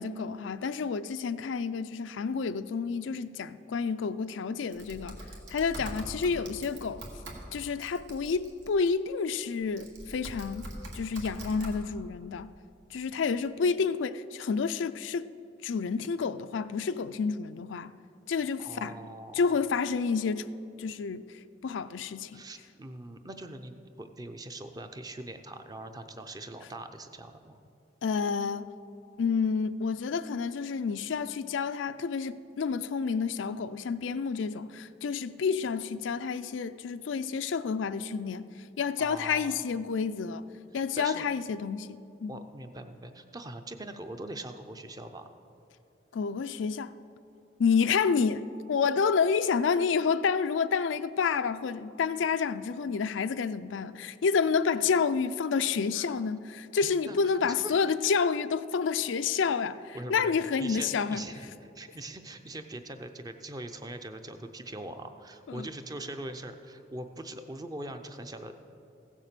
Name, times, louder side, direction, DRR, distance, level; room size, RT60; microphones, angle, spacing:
voice 1, 0.0-5.2 5.5-7.1 7.5-10.7 10.9-12.5 12.9-15.3 15.6-17.9 18.3-19.0 19.3-20.5 20.8-21.3 21.6-22.4 28.0-28.7 29.2-38.5 38.8-40.5 40.7-42.4 46.1-46.9 47.6-61.2 65.5-65.7, left 5 dB, 85° left, 0.4 m, -29 dB
Typing, 4.7-8.9 9.6-11.8, right 1 dB, 80° right, 1.9 m, -43 dB
voice 2, 18.6-19.4 22.3-27.6 39.0-39.6 40.7-41.3 42.3-45.3 55.9-56.1 57.1-57.8 59.9-60.3 60.6-68.5, right 1 dB, 20° right, 0.6 m, -42 dB
15.5 x 7.4 x 6.7 m
head